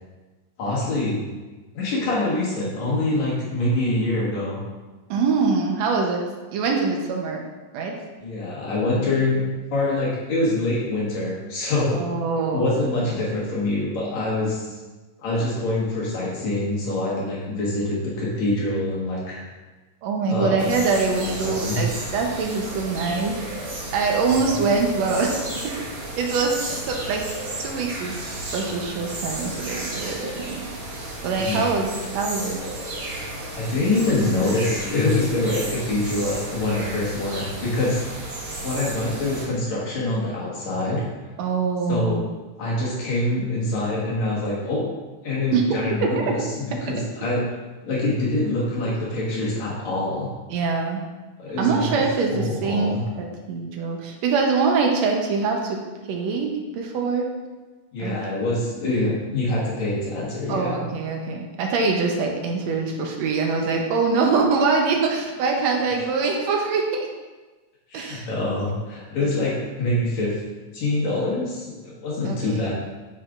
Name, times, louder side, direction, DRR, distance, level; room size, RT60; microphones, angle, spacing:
voice 1, 0.6-1.2 1.7-4.6 8.2-9.4 9.7-12.0 12.3-14.8 15.2-19.4 20.3-20.7 21.2-21.8 31.4-31.7 33.5-38.0 38.6-41.0 41.9-42.2 42.6-44.9 45.2-47.5 47.8-50.3 51.4-51.8 52.3-53.0 57.9-60.8 67.9-70.4 70.7-72.7, left 2 dB, 60° left, -6 dB, 2.6 m, -25 dB
voice 2, 5.1-6.2 6.5-7.4 7.7-7.9 11.9-12.7 20.0-23.4 23.7-25.4 25.6-25.7 26.2-27.2 27.6-30.6 31.2-32.6 41.4-42.2 45.5-45.6 46.0-46.3 50.5-51.0 51.6-55.8 56.1-57.3 58.0-58.2 60.5-67.1 67.9-68.3 69.2-69.5 72.2-72.6, right 4 dB, 75° right, 1 dB, 1.7 m, -24 dB
sound 1, 20.6-39.4, right 1 dB, 45° right, 1.8 m, -33 dB
8.6 x 6.5 x 2.4 m, 1.2 s
omnidirectional pair, 3.8 m